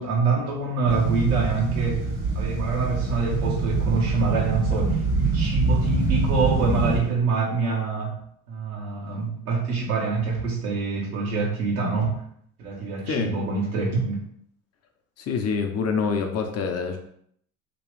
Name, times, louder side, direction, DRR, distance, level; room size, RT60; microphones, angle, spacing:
voice 1, 0.0-2.0 2.3-8.2 8.5-12.2 12.6-14.2, right 4 dB, 85° right, -3 dB, 1.2 m, -25 dB
sound 1, 0.9-7.0, right 3 dB, 65° right, 1.4 m, -25 dB
voice 2, 15.2-17.0, left 5 dB, 35° left, 5 dB, 0.7 m, -26 dB
3.2 x 3.0 x 3.1 m, 0.67 s
hypercardioid pair, 70°, 43 cm